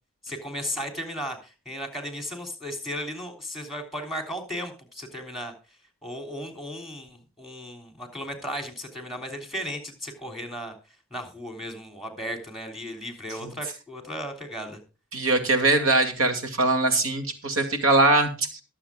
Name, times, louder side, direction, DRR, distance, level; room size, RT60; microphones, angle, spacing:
voice 1, 0.2-5.5 6.0-10.7 11.1-14.8, equal, ahead, 5 dB, 3.2 m, -35 dB
voice 2, 15.1-18.6, right 2 dB, 70° right, 6 dB, 2.4 m, -22 dB
22.0 x 7.6 x 2.3 m, 0.33 s
head